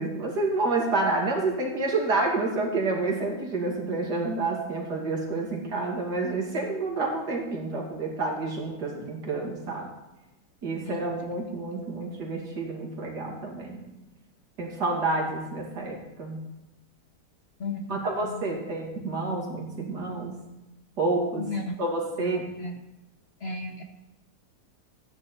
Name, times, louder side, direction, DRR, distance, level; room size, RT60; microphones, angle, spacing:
voice 1, 0.0-9.9 10.6-13.8 14.6-16.4 17.9-20.3 21.0-21.4 21.8-22.4, right 3 dB, 75° right, -1 dB, 3.0 m, -29 dB
voice 2, 17.6-18.0 18.3-18.6 21.4-21.8 22.2-22.8 23.4-23.8, left 3 dB, 45° left, 3 dB, 1.0 m, -35 dB
13.5 x 9.8 x 4.3 m, 0.99 s
omnidirectional pair, 1.8 m